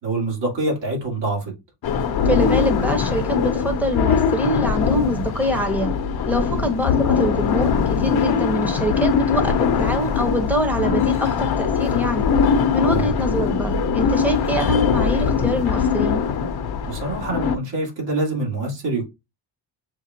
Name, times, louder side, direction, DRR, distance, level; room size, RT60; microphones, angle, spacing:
voice 1, 0.0-1.5 6.4-6.6 12.9-13.1 16.9-19.0, right 2 dB, 65° right, 2.3 m, -25 dB
sound 1, 1.8-17.6, left 6 dB, 55° left, 0.7 m, -21 dB
voice 2, 2.2-5.9 6.3-12.3 12.7-16.2, equal, 5° right, 0.9 m, -24 dB
6.6 x 2.4 x 2.8 m
cardioid pair, 130°, 46 cm